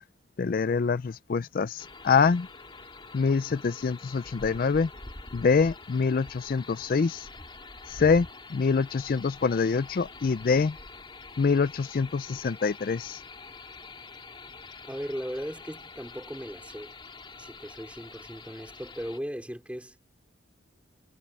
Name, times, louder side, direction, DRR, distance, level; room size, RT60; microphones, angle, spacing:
voice 1, 0.4-2.5 3.1-4.9 5.3-7.3 7.9-10.8 11.4-13.2, left 5 dB, 50° left, 0.4 m, -25 dB
sound 1, 1.8-19.2, left 3 dB, 25° left, 3.0 m, -46 dB
voice 2, 14.9-16.9 17.4-20.0, equal, 5° right, 4.5 m, -37 dB
head